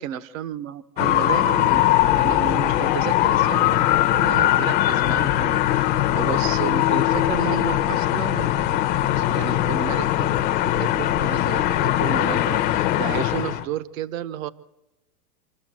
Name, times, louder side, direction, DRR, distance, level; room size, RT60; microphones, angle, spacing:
voice 1, 0.0-8.9 9.1-14.5, right 10 dB, 55° right, 14 dB, 1.1 m, -32 dB
sound 1, 1.0-13.6, left 13 dB, 20° left, 0.6 m, -21 dB
sound 2, 5.5-12.2, right 4 dB, 80° right, 3.1 m, -40 dB
26.5 x 13.5 x 7.5 m, 0.94 s
supercardioid pair, 155°, 47 cm